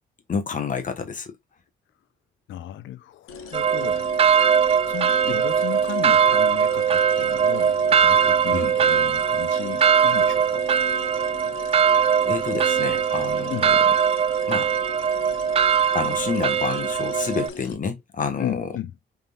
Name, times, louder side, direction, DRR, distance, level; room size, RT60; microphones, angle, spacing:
voice 1, 0.3-1.3 5.2-5.4 8.5-8.7 12.2-13.8 14.5-14.7 15.9-18.7, left 5 dB, 40° left, 1.3 m, -29 dB
voice 2, 2.5-4.1 4.9-10.7 13.5-13.7 18.4-18.9, left 12 dB, 75° left, 0.6 m, -35 dB
sound 1, 3.3-17.7, left 5 dB, 90° left, 1.1 m, -40 dB
sound 2, 3.5-17.5, right 7 dB, 30° right, 0.4 m, -21 dB
5.3 x 3.7 x 2.4 m
cardioid pair, 90°, 20 cm